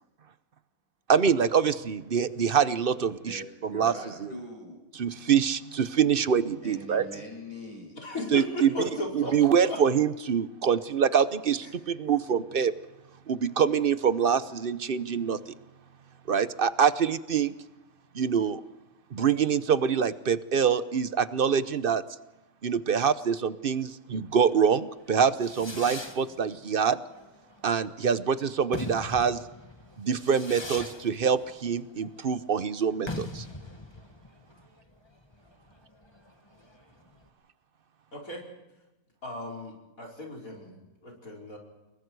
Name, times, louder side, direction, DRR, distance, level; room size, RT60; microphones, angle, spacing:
voice 1, 1.1-4.3 4.9-7.1 8.3-8.7 9.1-12.7 13.3-15.5 16.3-17.5 18.1-18.6 19.1-22.0 22.6-27.0 27.6-29.4 30.0-33.5, right 7 dB, 45° right, 0.9 m, -25 dB
voice 2, 3.3-4.8 6.6-8.0 9.3-9.4, equal, 25° right, 8.0 m, -42 dB
voice 3, 7.9-9.8 38.1-38.4 39.2-41.6, left 1 dB, 70° left, 5.4 m, -36 dB
Fireworks, 25.0-37.3, left 2 dB, 20° left, 1.4 m, -42 dB
28.0 x 22.5 x 4.7 m
omnidirectional pair, 1.5 m